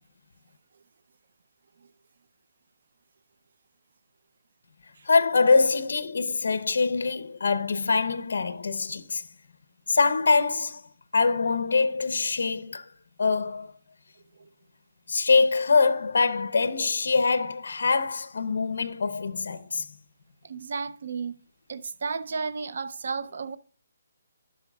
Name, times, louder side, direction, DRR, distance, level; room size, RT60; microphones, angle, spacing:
voice 1, 5.1-9.2 9.9-10.8 11.1-12.9 13.2-13.7 15.1-19.9, left 4 dB, 70° left, 0.7 m, -24 dB
voice 2, 20.4-21.3 21.7-23.6, right 4 dB, 55° right, 0.5 m, -32 dB
12.0 x 6.0 x 2.3 m
hypercardioid pair, 170°, 0 cm